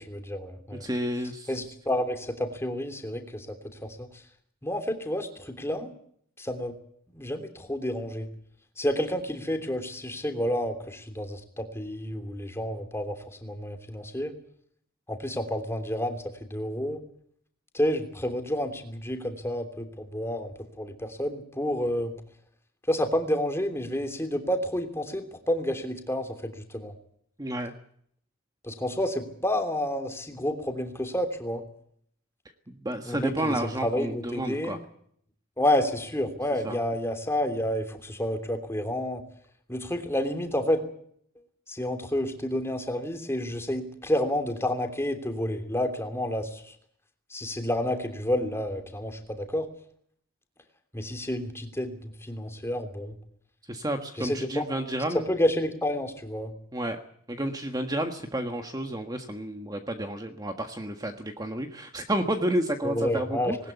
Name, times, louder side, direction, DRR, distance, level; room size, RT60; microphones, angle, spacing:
voice 1, 0.0-0.9 1.5-4.2 4.6-5.9 6.4-6.8 7.1-8.3 8.8-14.3 15.1-17.0 17.7-22.1 22.9-26.9 28.6-31.6 33.1-34.8 35.6-39.2 39.7-40.9 41.7-46.7 47.3-49.7 50.9-53.1 54.2-54.7 55.1-56.5 62.8-63.6, left 1 dB, 10° left, 6 dB, 3.1 m, -30 dB
voice 2, 0.8-1.5 27.4-27.7 32.8-34.8 36.6-36.7 53.7-55.3 56.7-57.0 57.3-63.6, right 1 dB, 20° right, 5 dB, 1.6 m, -30 dB
20.5 x 19.5 x 8.2 m, 0.65 s
head